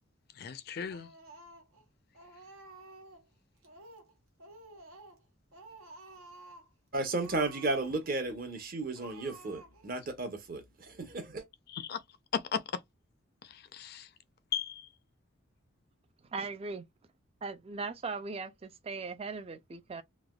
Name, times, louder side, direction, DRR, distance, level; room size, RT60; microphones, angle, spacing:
voice 1, 0.4-1.1 11.7-12.0 12.3-12.6 13.5-14.1 14.5-14.9, left 7 dB, 45° left, 0.4 m, -36 dB
Speech, 0.9-1.8 2.1-3.3 3.6-4.1 4.4-5.2 5.5-6.7 7.1-8.2 8.5-8.6 8.9-10.0, right 2 dB, 85° right, 0.9 m, -52 dB
voice 2, 6.9-11.4, right 2 dB, 45° right, 0.7 m, -34 dB
voice 3, 16.3-16.9 17.4-20.0, right 4 dB, 30° right, 0.3 m, -39 dB
3.2 x 2.2 x 2.2 m
head